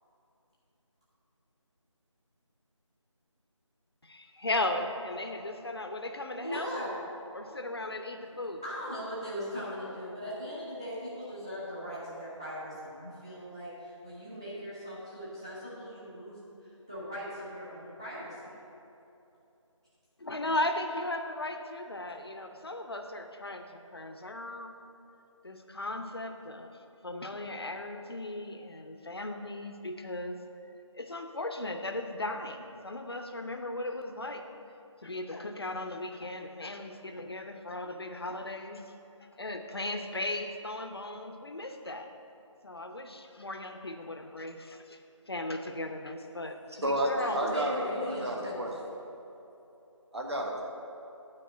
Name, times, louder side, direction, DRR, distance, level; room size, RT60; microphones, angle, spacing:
voice 1, 4.0-6.7 7.3-8.6 20.2-24.8 25.4-26.7 27.0-30.4 30.9-34.4 35.0-38.9 39.4-42.1 42.6-45.0 45.3-47.6, left 2 dB, 50° left, 5 dB, 0.7 m, -37 dB
voice 2, 6.4-6.9 8.6-16.4 16.9-18.5 47.2-48.7, equal, 10° right, -10 dB, 0.9 m, -39 dB
voice 3, 46.8-48.7 50.1-50.6, right 1 dB, 55° right, 0 dB, 1.5 m, -31 dB
8.7 x 4.7 x 7.3 m, 2.9 s
figure-of-eight pair, 180°, 16 cm